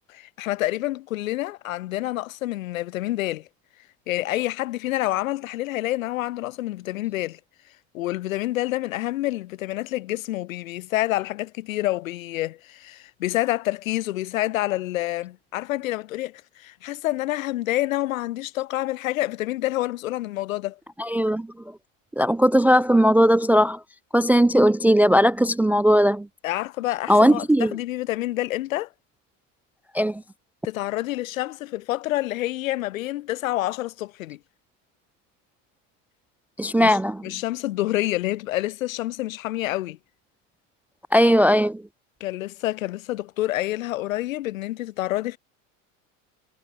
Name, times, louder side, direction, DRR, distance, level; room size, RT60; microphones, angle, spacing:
voice 1, 0.1-3.5 4.1-7.4 7.9-20.8 26.4-28.9 30.6-34.4 36.8-37.0 37.2-40.0 42.2-45.4, left 16 dB, 85° left, 2.7 m, -28 dB
voice 2, 21.0-21.5 22.2-23.8 24.1-26.3 27.1-27.7 29.9-30.2 36.6-37.2 41.1-41.8, equal, 5° right, 0.3 m, -18 dB
supercardioid pair, 110°, 40 cm